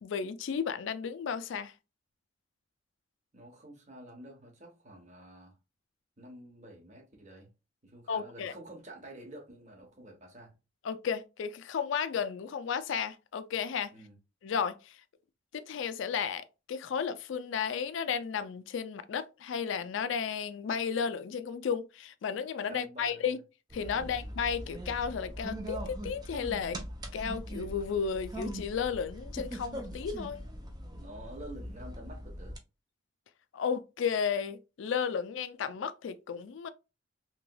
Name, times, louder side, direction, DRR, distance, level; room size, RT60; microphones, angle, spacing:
voice 1, 0.0-1.7 8.1-8.5 10.8-13.9 14.4-15.0 15.5-23.4 23.7-26.8 27.1-30.4 33.5-36.7, left 6 dB, 65° left, 0.3 m, -33 dB
voice 2, 3.3-5.6 6.2-7.5 7.8-10.5 13.9-14.1 22.7-23.4 24.0-24.1 30.9-32.6, right 1 dB, 35° right, 1.0 m, -49 dB
sound 1, 23.7-32.6, equal, 20° right, 0.5 m, -41 dB
3.1 x 2.9 x 2.2 m
head